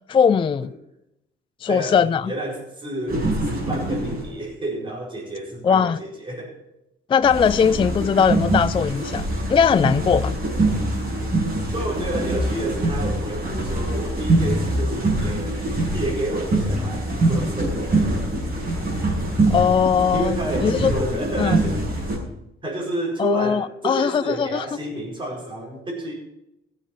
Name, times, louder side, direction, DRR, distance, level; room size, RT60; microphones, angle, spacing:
voice 1, 0.1-0.7 1.6-2.3 5.6-6.0 7.1-9.2 9.5-10.3 19.5-20.9 21.4-21.6 23.2-24.6, left 6 dB, 25° left, 0.3 m, -19 dB
voice 2, 1.7-6.6 11.7-18.1 20.1-21.8 22.6-26.1, right 1 dB, 25° right, 4.7 m, -30 dB
sound 1, 3.1-4.4 7.2-22.2, right 1 dB, 45° right, 5.2 m, -24 dB
15.5 x 7.5 x 5.7 m
cardioid pair, 90°, 20 cm